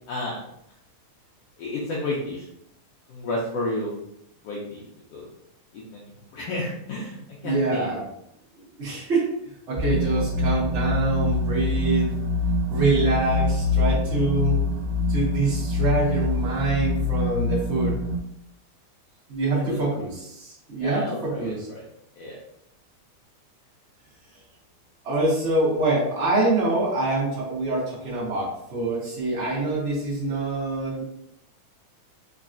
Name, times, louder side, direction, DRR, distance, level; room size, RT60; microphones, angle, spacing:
voice 1, 0.1-0.4 1.6-2.4 3.1-3.9 4.4-4.8 5.1-5.3 5.7-7.2 7.4-7.9 19.5-19.8 20.8-21.8 22.2-22.4, left 2 dB, 70° left, -5 dB, 1.5 m, -31 dB
voice 2, 7.4-8.1 8.8-9.3 9.7-12.1 12.7-14.6 15.1-17.9 19.3-21.7 25.0-31.0, right 2 dB, 50° right, -6 dB, 0.8 m, -25 dB
sound 1, 9.8-18.2, left 2 dB, 80° right, 1.8 m, -25 dB
4.6 x 3.1 x 2.6 m, 0.76 s
omnidirectional pair, 3.5 m